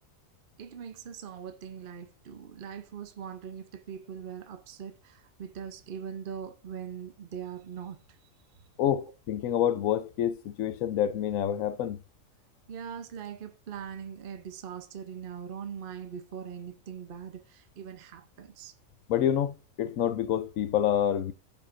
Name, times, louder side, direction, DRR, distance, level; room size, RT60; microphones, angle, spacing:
voice 1, 0.6-8.2 12.7-18.7, right 8 dB, 50° right, 0.8 m, -41 dB
voice 2, 8.8-12.0 19.1-21.3, left 10 dB, 80° left, 1.1 m, -27 dB
17.0 x 5.8 x 2.5 m
omnidirectional pair, 1.4 m